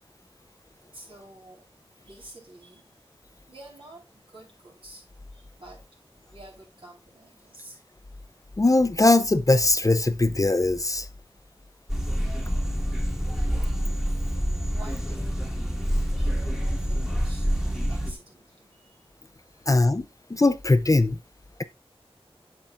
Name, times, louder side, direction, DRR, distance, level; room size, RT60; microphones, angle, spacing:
voice 1, 0.9-1.7 2.0-2.8 3.5-5.0 5.3-5.8 6.3-7.8 14.0-15.4 15.7-17.5 17.9-19.1 19.5-19.7, right 2 dB, 60° right, 4.0 m, -49 dB
voice 2, 8.6-11.1 19.7-20.0 20.3-21.2, left 2 dB, 30° left, 0.5 m, -20 dB
sound 1, 11.9-18.1, equal, 5° right, 1.7 m, -27 dB
8.7 x 7.0 x 2.5 m
wide cardioid pair, 65°, 10 cm